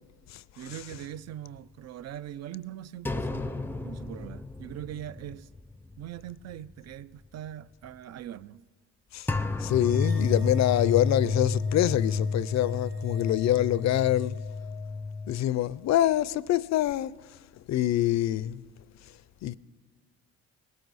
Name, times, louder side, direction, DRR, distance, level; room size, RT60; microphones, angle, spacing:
voice 1, 0.6-5.5 6.0-8.6, right 11 dB, 60° right, 0.5 m, -41 dB
sound 1, 3.1-6.2 6.5-6.7 9.3-15.3, left 3 dB, 5° left, 0.5 m, -31 dB
voice 2, 9.6-14.4 15.3-17.1 17.7-18.6 19.4-19.6, left 13 dB, 65° left, 0.5 m, -25 dB
sound 2, 9.8-16.3, left 9 dB, 45° right, 3.1 m, -49 dB
18.5 x 17.0 x 4.1 m
cardioid pair, 90°, 30 cm